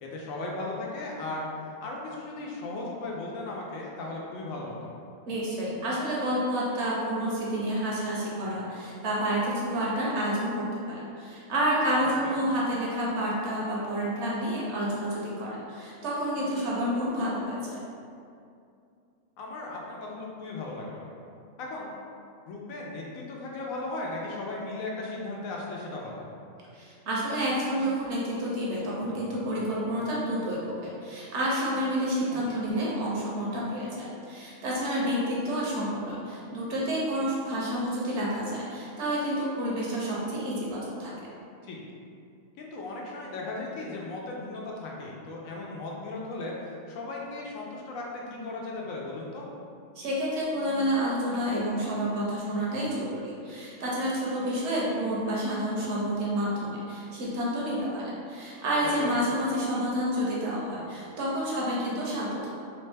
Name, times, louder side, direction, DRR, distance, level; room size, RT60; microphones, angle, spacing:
voice 1, 0.0-1.5 1.8-4.9 12.2-12.3 19.4-21.1 21.6-21.9 22.5-26.3 32.3-32.7 41.6-41.8 42.6-48.0 48.3-49.5 59.0-59.1, left 2 dB, 80° left, -2 dB, 1.0 m, -36 dB
voice 2, 5.3-17.8 26.7-41.1 50.0-62.5, equal, 65° right, -5 dB, 0.9 m, -29 dB
3.1 x 2.1 x 3.3 m, 2.4 s
omnidirectional pair, 1.4 m